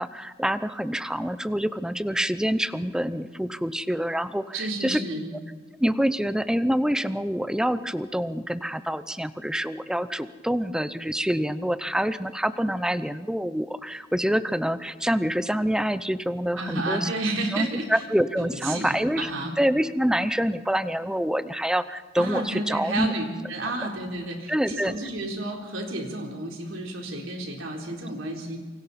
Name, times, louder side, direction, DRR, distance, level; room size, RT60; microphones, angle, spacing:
voice 1, 0.0-5.0 5.8-17.1 17.5-19.3 19.6-23.1 24.5-24.9, equal, 5° right, 13 dB, 0.6 m, -26 dB
voice 2, 4.5-5.3 16.6-18.0 18.4-19.6 22.2-28.6, right 2 dB, 85° right, 1 dB, 3.8 m, -31 dB
27.5 x 24.5 x 4.2 m, 1.4 s
head